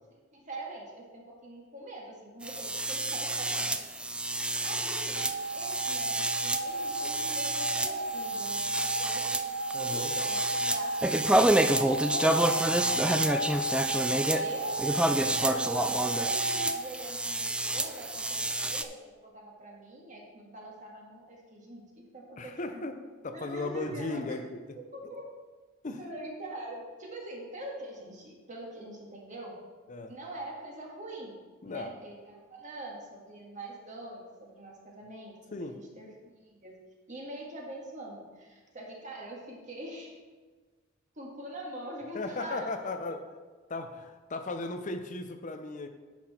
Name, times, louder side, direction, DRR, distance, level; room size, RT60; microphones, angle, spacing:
voice 1, 0.0-4.3 4.6-5.2 5.5-9.3 9.9-11.1 11.5-14.8 15.2-19.0 19.2-21.8 22.1-22.9 23.3-24.4 24.8-25.3 26.0-29.6 30.1-36.1 36.4-36.7 37.1-40.1 41.2-43.2, right 1 dB, 40° right, -1 dB, 1.8 m, -43 dB
sound 1, 2.4-18.8, right 1 dB, 5° right, 0.3 m, -29 dB
sound 2, 5.2-16.8, right 2 dB, 85° right, 0.5 m, -34 dB
voice 2, 9.7-10.1 15.3-15.6 22.4-23.0 23.2-24.6 25.0-25.1 25.8-26.0 29.9-30.1 31.6-31.9 35.5-35.8 42.1-43.2 43.7-45.9, left 3 dB, 40° left, 7 dB, 0.6 m, -36 dB
10.0 x 6.1 x 4.3 m, 1.4 s
head